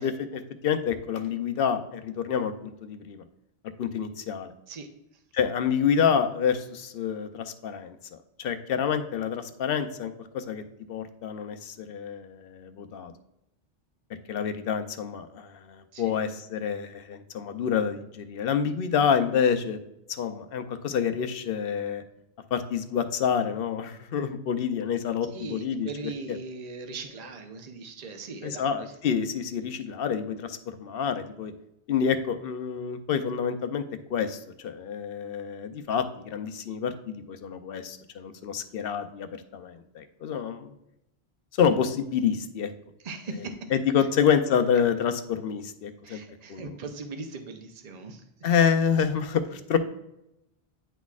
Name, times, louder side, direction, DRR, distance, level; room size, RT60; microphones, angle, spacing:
voice 1, 0.0-2.5 2.8-3.2 3.8-4.5 5.3-10.6 10.9-13.1 14.3-19.8 20.1-22.0 22.5-25.9 26.3-26.4 28.4-31.5 31.9-33.8 34.1-40.7 41.6-42.7 43.7-46.2 46.5-46.8 48.4-49.8, left 7 dB, 65° left, 8 dB, 0.7 m, -28 dB
voice 2, 25.3-28.9 43.0-43.5 46.0-48.2, right 4 dB, 45° right, 5 dB, 0.7 m, -39 dB
9.9 x 4.0 x 2.4 m, 0.85 s
omnidirectional pair, 1.1 m